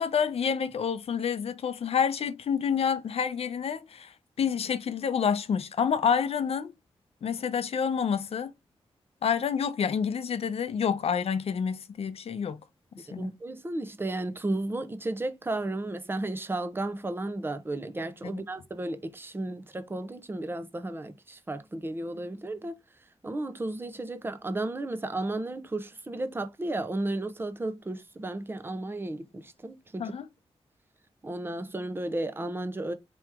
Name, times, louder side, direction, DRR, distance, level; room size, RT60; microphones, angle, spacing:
voice 1, 0.0-6.7 7.2-8.5 9.2-12.6 12.9-13.3 18.3-18.4 30.0-30.3, left 7 dB, 75° left, 0.6 m, -28 dB
voice 2, 13.2-22.8 23.2-30.1 31.2-32.9, right 2 dB, 20° right, 0.7 m, -33 dB
4.7 x 3.0 x 3.4 m
wide cardioid pair, 120°, 10 cm